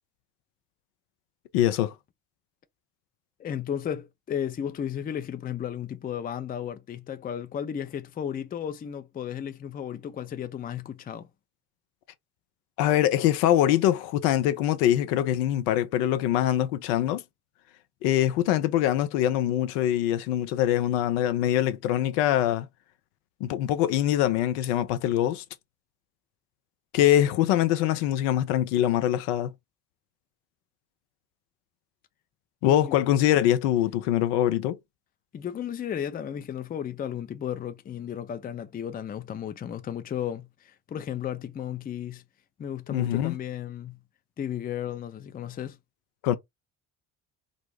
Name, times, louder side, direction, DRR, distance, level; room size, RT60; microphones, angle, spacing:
voice 1, 1.5-1.9 12.8-17.2 18.0-22.7 23.4-25.4 26.9-29.5 32.6-34.8 42.9-43.4 46.2-46.3, left 12 dB, 75° left, 0.5 m, -23 dB
voice 2, 3.4-11.3 27.0-27.1 32.6-33.0 35.3-42.2 42.6-44.0 44.4-45.8, left 9 dB, 20° left, 0.4 m, -34 dB
2.5 x 2.0 x 3.1 m
hypercardioid pair, 50°, 47 cm